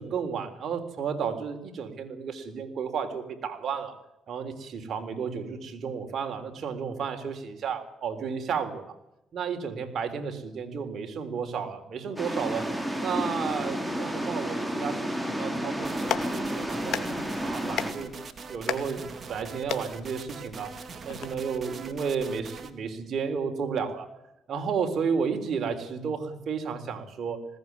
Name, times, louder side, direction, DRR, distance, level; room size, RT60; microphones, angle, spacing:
voice 1, 0.0-4.0 4.3-8.9 9.3-12.7 13.0-17.1 17.4-18.2 18.5-19.0 19.3-20.7 21.0-24.1 24.5-27.4, right 6 dB, 60° right, 5 dB, 3.8 m, -32 dB
sound 1, 12.2-17.9, equal, 5° right, 3.2 m, -31 dB
Clapping, 15.8-21.3, left 10 dB, 80° left, 2.2 m, -37 dB
sound 2, 15.8-22.7, right 5 dB, 40° right, 2.7 m, -42 dB
20.5 x 17.5 x 9.7 m, 0.89 s
cardioid pair, 90°, 0 cm